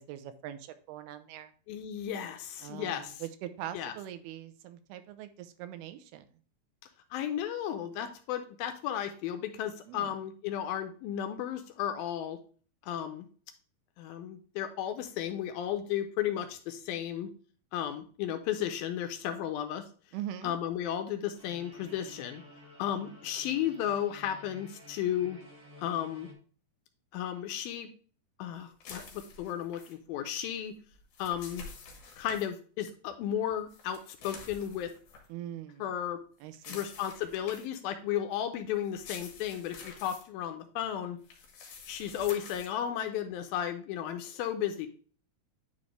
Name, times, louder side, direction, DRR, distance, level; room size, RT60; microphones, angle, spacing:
voice 1, 0.0-1.5 2.6-6.3 9.9-10.2 20.1-20.5 35.3-35.9 36.4-36.8, right 11 dB, 85° right, 9 dB, 2.7 m, -42 dB
voice 2, 1.7-3.2 3.7-3.9 7.1-12.4 12.8-13.3 14.0-17.3 17.7-19.9 20.4-22.4 22.8-25.4 25.8-26.3 27.1-27.9 28.4-30.7 31.2-31.6 32.2-34.9 35.8-36.2 36.7-41.2 41.9-44.9, left 10 dB, 80° left, 7 dB, 2.2 m, -34 dB
sound 1, 21.4-26.3, left 1 dB, 60° right, 1.0 m, -53 dB
sound 2, 28.8-29.9 30.9-32.5 33.7-35.3 36.5-37.8 38.8-40.2 41.2-42.7, left 4 dB, 60° left, 2.6 m, -48 dB
9.9 x 4.1 x 3.2 m, 0.42 s
omnidirectional pair, 4.5 m